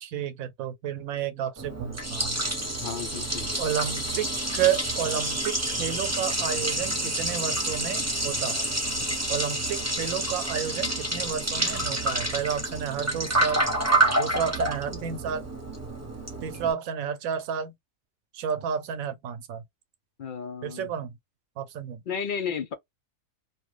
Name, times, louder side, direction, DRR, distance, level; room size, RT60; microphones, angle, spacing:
voice 1, 0.0-2.4 3.6-4.3 4.5-8.7 9.0-13.6 14.2-15.4 16.4-17.7 18.3-19.6 20.6-21.1 21.6-22.0, right 8 dB, 90° right, 1.1 m, -31 dB
Liquid, 1.6-16.7, right 1 dB, 15° right, 1.0 m, -28 dB
voice 2, 2.8-3.5 20.2-20.9 22.1-22.7, left 6 dB, 60° left, 0.5 m, -33 dB
3.0 x 2.2 x 3.2 m
omnidirectional pair, 1.4 m